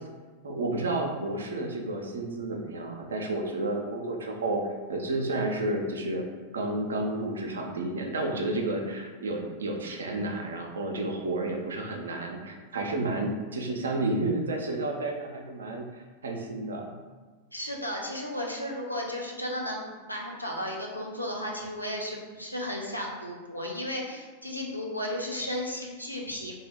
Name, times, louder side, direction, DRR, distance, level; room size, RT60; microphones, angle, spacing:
voice 1, 0.4-4.6 4.9-6.2 6.5-17.0, right 2 dB, 70° right, 2 dB, 0.4 m, -31 dB
voice 2, 17.5-26.6, left 1 dB, 90° left, -1 dB, 0.5 m, -34 dB
2.8 x 2.2 x 3.4 m, 1.3 s
figure-of-eight pair, 90°, 0 cm